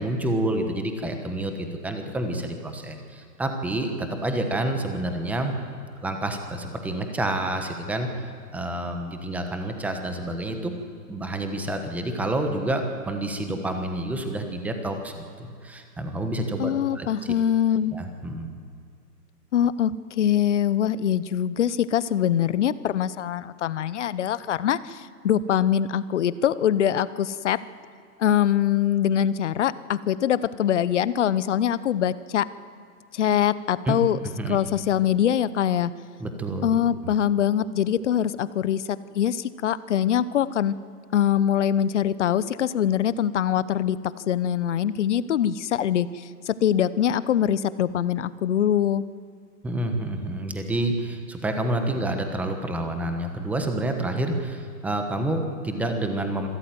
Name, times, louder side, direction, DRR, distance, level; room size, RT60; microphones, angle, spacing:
voice 1, 0.0-5.5 6.0-8.1 8.5-10.7 11.1-17.1 17.9-18.5 33.9-34.0 34.4-34.6 36.2-36.7 49.6-56.5, right 1 dB, 5° right, 5 dB, 1.2 m, -28 dB
voice 2, 16.6-17.9 19.5-27.6 28.2-32.5 33.1-34.2 34.5-35.9 36.6-40.7 41.1-44.0 44.3-49.0, left 10 dB, 45° left, 16 dB, 0.9 m, -23 dB
26.0 x 13.5 x 9.3 m, 2.2 s
hypercardioid pair, 145°, 49 cm